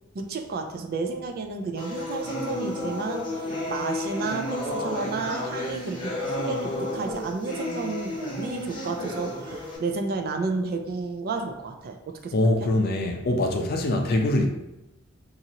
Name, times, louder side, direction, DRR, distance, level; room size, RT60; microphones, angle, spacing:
voice 1, 0.1-12.7, right 4 dB, 45° right, 5 dB, 0.4 m, -32 dB
sound 1, 1.8-9.8, left 1 dB, 25° left, 0.9 m, -32 dB
voice 2, 12.3-14.5, left 1 dB, 50° left, 3 dB, 0.5 m, -23 dB
4.1 x 2.5 x 2.8 m, 0.93 s
head